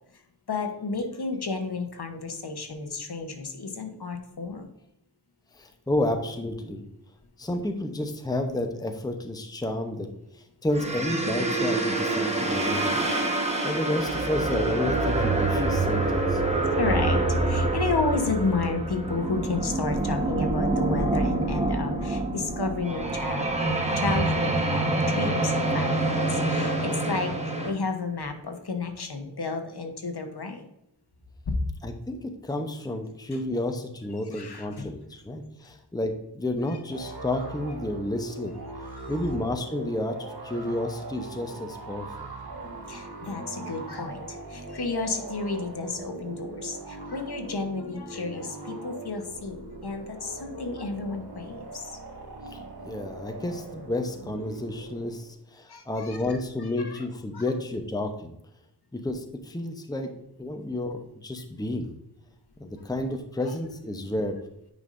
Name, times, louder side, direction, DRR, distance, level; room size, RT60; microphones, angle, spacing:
voice 1, 0.5-4.7 16.7-27.3 27.6-30.6 34.3-34.9 42.5-51.9 55.7-56.4 56.8-57.0 57.3-57.4, left 3 dB, 65° left, 5 dB, 1.2 m, -32 dB
voice 2, 5.5-6.9 7.4-10.1 10.3-13.1 13.6-16.4 31.8-38.5 39.1-42.3 52.4-58.3 58.9-60.1 60.4-61.9 62.6-64.4, left 1 dB, 10° left, 5 dB, 0.8 m, -31 dB
sound 1, 10.7-27.7, right 2 dB, 15° right, 1.2 m, -26 dB
sound 2, 36.9-55.3, right 2 dB, 60° right, 1.7 m, -41 dB
9.6 x 5.4 x 2.6 m, 0.83 s
wide cardioid pair, 80°, 42 cm